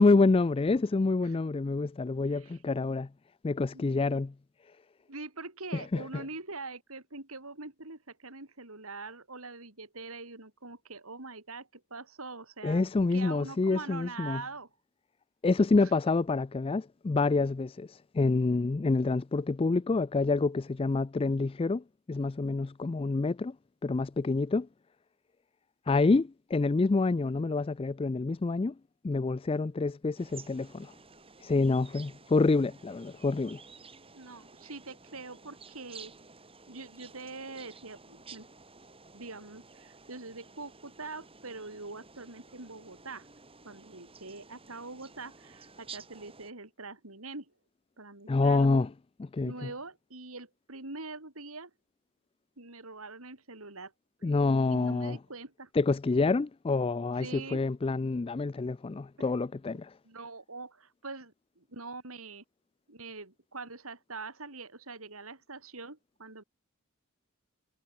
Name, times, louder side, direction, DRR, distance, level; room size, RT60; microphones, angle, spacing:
voice 1, 0.0-3.1 3.4-4.3 5.7-6.2 12.6-14.4 15.4-17.9 18.1-23.6 23.8-24.7 25.9-28.7 29.0-30.9 31.4-33.6 48.3-48.9 49.3-49.7 54.2-55.2 55.8-59.9, left 3 dB, 25° left, 0.3 m, -27 dB
voice 2, 5.1-14.7 15.8-16.0 34.1-36.1 36.7-38.5 39.1-43.3 43.6-47.5 48.0-48.8 49.4-51.7 52.6-53.9 54.2-54.3 54.7-55.7 57.1-57.6 60.0-62.4 62.9-66.4, right 3 dB, 75° right, 4.6 m, -44 dB
sound 1, 30.2-46.5, right 4 dB, 25° right, 6.8 m, -53 dB
head